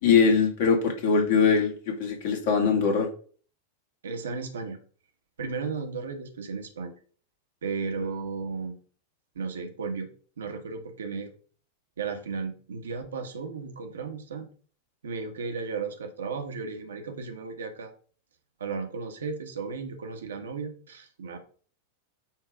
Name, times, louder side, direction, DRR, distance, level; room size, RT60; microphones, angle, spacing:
voice 1, 0.0-3.1, left 5 dB, 50° left, 2 dB, 2.2 m, -22 dB
voice 2, 4.0-4.8 5.4-6.9 7.6-8.8 9.3-10.1 10.4-11.3 12.0-14.5 15.0-17.9 18.6-21.4, right 4 dB, 65° right, 5 dB, 1.4 m, -34 dB
8.8 x 3.4 x 5.1 m, 0.43 s
figure-of-eight pair, 90°, 0 cm